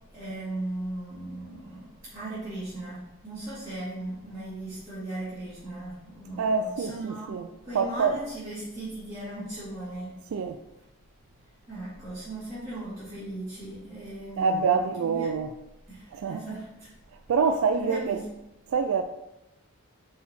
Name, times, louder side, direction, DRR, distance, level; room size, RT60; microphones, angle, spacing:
voice 1, 0.1-10.2 11.7-15.3 15.9-16.9 17.8-18.3, right 1 dB, 15° right, 2.1 m, -37 dB
voice 2, 6.4-8.2 10.3-10.6 14.4-15.6 16.1-16.4 17.3-18.2 18.7-19.0, right 5 dB, 70° right, 0.3 m, -26 dB
5.5 x 4.3 x 4.3 m
head